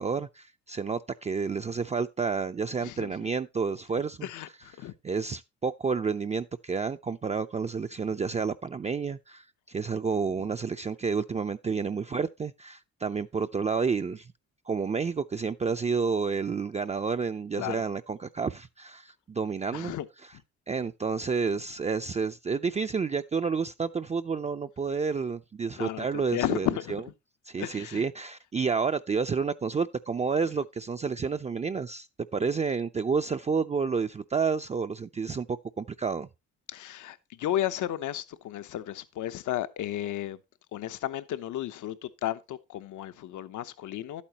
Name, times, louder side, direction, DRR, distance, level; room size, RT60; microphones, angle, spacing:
voice 1, 0.0-4.3 4.8-14.3 14.7-19.9 20.2-20.3 20.7-27.0 27.5-32.1 32.3-36.3, right 5 dB, 25° right, 0.4 m, -30 dB
voice 2, 2.8-3.3 4.2-4.9 17.6-17.8 19.7-20.1 25.8-27.0 27.6-28.0 36.7-40.4 40.7-44.2, left 12 dB, 80° left, 1.0 m, -33 dB
11.5 x 8.6 x 2.9 m
cardioid pair, 90°, 30 cm